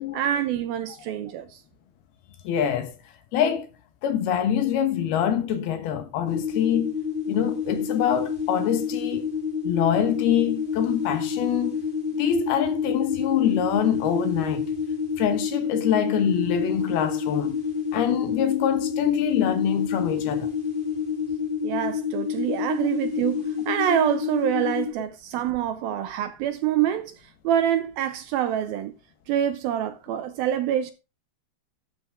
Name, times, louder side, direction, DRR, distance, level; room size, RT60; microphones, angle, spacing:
voice 1, 0.0-1.6 21.6-27.1 27.4-28.9 29.3-30.9, right 10 dB, 75° right, 2.3 m, -26 dB
voice 2, 2.4-2.9 3.3-3.7 4.0-6.9 7.3-9.3 9.6-11.8 12.2-14.7 15.2-17.6 17.9-20.5, left 9 dB, 70° left, 3.0 m, -25 dB
sound 1, 6.2-24.9, left 6 dB, 50° left, 0.6 m, -28 dB
13.0 x 7.9 x 3.6 m
omnidirectional pair, 4.9 m